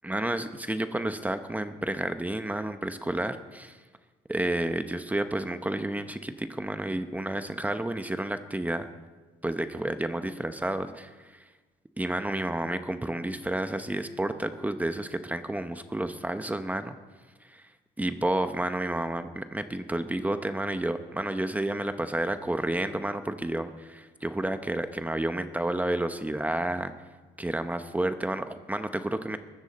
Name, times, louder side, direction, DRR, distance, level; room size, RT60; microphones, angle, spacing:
voice 1, 0.0-3.8 4.3-8.9 9.4-11.1 12.0-17.0 17.5-17.6 18.0-26.9 27.4-29.4, right 1 dB, 10° right, 9 dB, 0.9 m, -30 dB
22.5 x 13.5 x 4.2 m, 1.3 s
cardioid pair, 110°, 17 cm